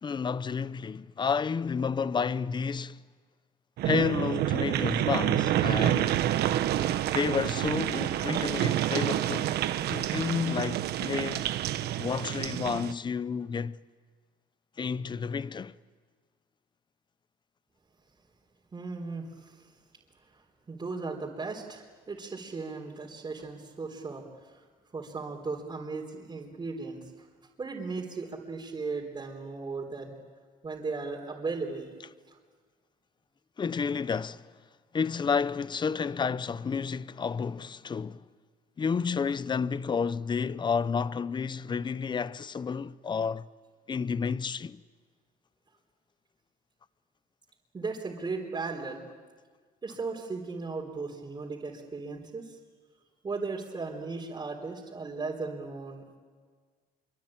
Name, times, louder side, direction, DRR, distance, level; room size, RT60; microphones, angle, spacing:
voice 1, 0.0-3.0 3.8-6.2 7.1-9.5 9.9-11.5 12.0-13.8 14.8-15.7 33.6-34.5 34.9-38.2 38.8-43.5 43.9-44.8, left 5 dB, 25° left, 0.7 m, -30 dB
sound 1, 3.8-12.9, right 12 dB, 75° right, 1.1 m, -28 dB
voice 2, 18.7-19.7 20.3-24.6 24.9-27.3 27.6-30.2 30.6-31.9 32.3-32.4 47.7-49.1 49.8-52.6 53.2-56.2, right 4 dB, 25° right, 3.9 m, -37 dB
26.0 x 24.5 x 9.0 m
cardioid pair, 110°, 17 cm